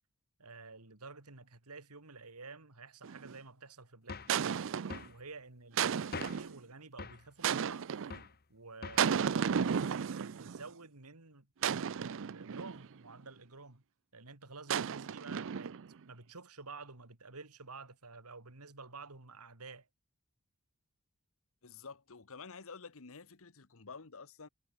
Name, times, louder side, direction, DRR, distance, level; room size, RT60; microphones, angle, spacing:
voice 1, 0.4-4.7 5.1-7.9 8.5-9.9 10.2-13.8 14.1-15.8 16.0-19.9, right 4 dB, 90° right, 2.7 m, -51 dB
sound 1, 3.0-3.4 4.3-5.1 5.8-6.6 7.4-8.2 9.0-10.6 11.6-12.9 14.7-15.9, right 7 dB, 60° right, 0.5 m, -33 dB
sound 2, 4.1-4.4 4.9-5.2 6.1-6.5 7.0-7.3 8.1-8.4 8.8-9.1, left 4 dB, 45° left, 1.3 m, -44 dB
voice 2, 21.6-24.5, left 4 dB, 65° left, 1.2 m, -50 dB
head